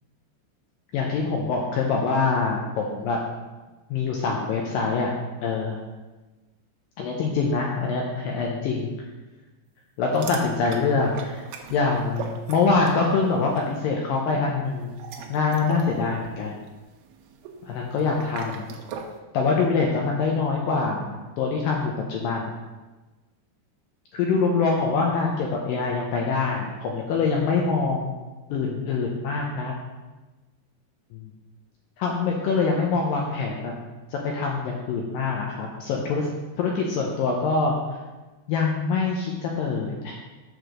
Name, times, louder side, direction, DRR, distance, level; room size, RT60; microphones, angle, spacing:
voice 1, 0.9-3.2 3.9-5.1 5.4-5.8 7.0-8.9 10.0-11.4 11.7-14.9 15.3-16.6 17.6-18.7 19.3-22.6 24.1-28.1 28.5-29.7 31.1-31.3 32.0-33.7 34.1-36.3 36.6-37.7 38.5-40.1, left 4 dB, 90° left, -1 dB, 1.9 m, -24 dB
sound 1, 10.1-13.1 13.3-13.7 14.8-19.2, right 6 dB, 75° right, 2.4 m, -40 dB
7.0 x 4.7 x 6.2 m, 1.2 s
omnidirectional pair, 5.0 m